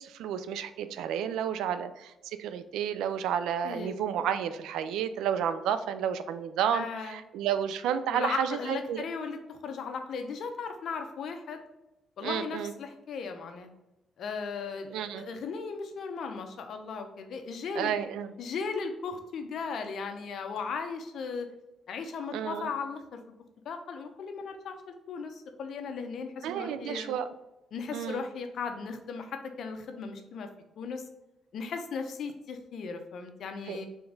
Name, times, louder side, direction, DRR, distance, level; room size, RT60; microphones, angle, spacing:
voice 1, 0.0-9.0 12.2-12.7 14.9-15.3 17.8-18.3 22.3-22.7 26.4-27.3 27.9-28.3 33.7-33.8, right 9 dB, 85° right, 11 dB, 0.3 m, -31 dB
voice 2, 6.7-7.2 8.1-11.6 12.2-13.7 14.2-17.9 18.4-21.5 21.9-23.2 23.6-24.8 25.1-27.1 27.7-30.5 30.8-31.0 31.5-33.9, left 5 dB, 65° left, 6 dB, 0.7 m, -37 dB
3.8 x 3.4 x 3.9 m, 0.95 s
cardioid pair, 90°, 0 cm